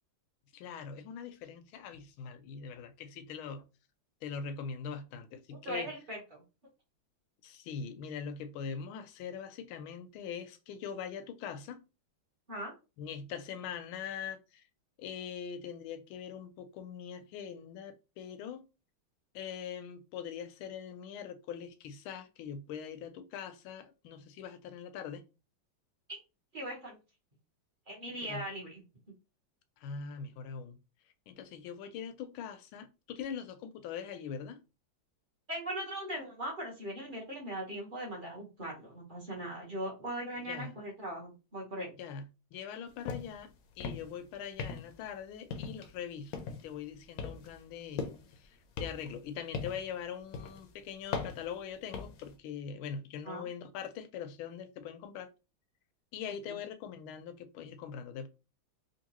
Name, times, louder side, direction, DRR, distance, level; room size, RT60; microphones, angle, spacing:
voice 1, 0.5-3.7 4.2-5.9 7.4-11.8 13.0-14.6 15.0-18.6 19.3-25.2 28.2-28.4 29.8-30.8 31.3-34.6 40.5-40.7 42.0-43.5 43.8-55.3 56.1-58.3, left 7 dB, 90° left, 1.4 m, -42 dB
voice 2, 5.5-6.4 12.5-12.7 26.1-26.2 26.5-27.0 27.9-28.8 35.5-41.9 53.2-53.5 56.4-56.6, right 1 dB, 30° right, 1.0 m, -39 dB
sound 1, 43.0-43.4 43.7-44.2 44.6-45.1 45.5-46.0 46.3-46.7 47.2-48.4 48.8-49.9 50.3-50.6 51.1-52.3, left 5 dB, 70° left, 0.8 m, -39 dB
3.6 x 2.6 x 2.9 m
omnidirectional pair, 2.2 m